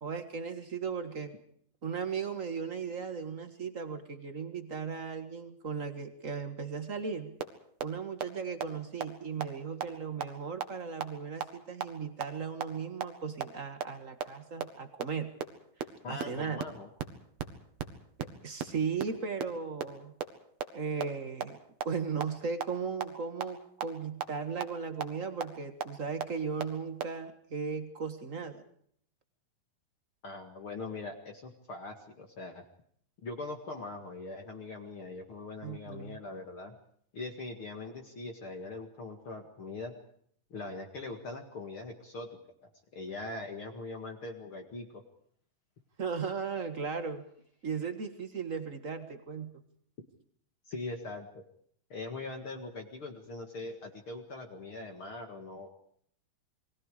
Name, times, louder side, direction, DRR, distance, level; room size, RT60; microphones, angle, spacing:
voice 1, 0.0-1.3 1.8-7.4 7.8-15.3 16.1-16.6 18.4-20.2 20.7-28.6 35.6-36.2 46.0-47.2 47.6-49.5, right 5 dB, 65° right, 8 dB, 0.7 m, -36 dB
sound 1, 7.4-7.5 7.8-7.9 8.2-8.3 8.6-8.7 9.0-9.1 9.4-9.5 9.8-9.9 10.2-10.3 10.6-10.7 11.0-11.1 11.4-11.5 11.8-11.9 12.2-12.3 12.6-12.7 13.0-13.1 13.4-13.5 13.8-13.9 14.2-14.3 14.6-14.7 15.0-15.1 15.4-15.5 15.8-15.9 16.2-16.3 16.6-16.7 17.0-17.1 17.4-17.5 17.8-17.9 18.2-18.3 18.6-18.7 19.0-19.1 19.4-19.5 19.8-19.9 20.2-20.3 20.6-20.7 21.0-21.1 21.4-21.5 21.8-21.9 22.2-22.3 22.6-22.7 23.0-23.1 23.4-23.5 23.8-23.9 24.2-24.3 24.6-24.7 25.0-25.1 25.4-25.5 25.8-25.9 26.2-26.3 26.6-26.7 27.0-27.1, right 7 dB, 85° right, 3.6 m, -33 dB
voice 2, 16.0-16.9 30.2-32.6 33.2-36.8 37.1-39.9 40.5-42.3 42.6-45.0 50.7-51.4 51.9-55.7, left 3 dB, 40° left, 4 dB, 2.3 m, -41 dB
28.5 x 22.0 x 5.0 m, 0.64 s
omnidirectional pair, 4.2 m